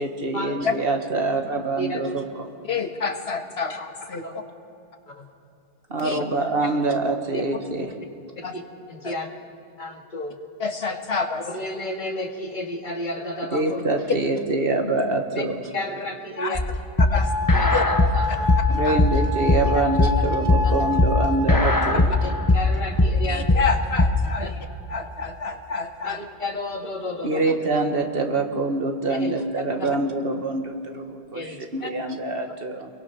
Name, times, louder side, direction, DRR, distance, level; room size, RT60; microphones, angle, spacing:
voice 1, 0.0-2.5 5.9-7.9 13.5-15.6 18.7-22.1 27.2-31.4 31.7-32.9, right 2 dB, 65° right, 4 dB, 1.9 m, -25 dB
voice 2, 2.6-4.4 6.0-6.2 8.4-8.6 9.0-9.1 10.6-11.4 16.4-16.6 17.1-17.3 17.7-17.8 18.8-19.0 23.2-24.5 24.9-26.2 31.8-31.9, left 4 dB, 80° left, 5 dB, 1.8 m, -28 dB
voice 3, 8.9-9.3 9.8-10.4 11.5-13.8 15.3-15.4 15.7-16.6 17.5-18.5 19.7-19.8 20.5-20.7 22.0-23.5 24.4-24.5 26.0-27.6 29.1-29.4 31.3-31.7, left 1 dB, 50° left, 2 dB, 2.0 m, -32 dB
sound 1, 16.5-24.3, left 2 dB, 20° left, 1.1 m, -19 dB
sound 2, 17.1-24.1 24.9-25.5, left 3 dB, 5° right, 1.6 m, -30 dB
28.5 x 22.5 x 5.9 m, 2.6 s
omnidirectional pair, 1.1 m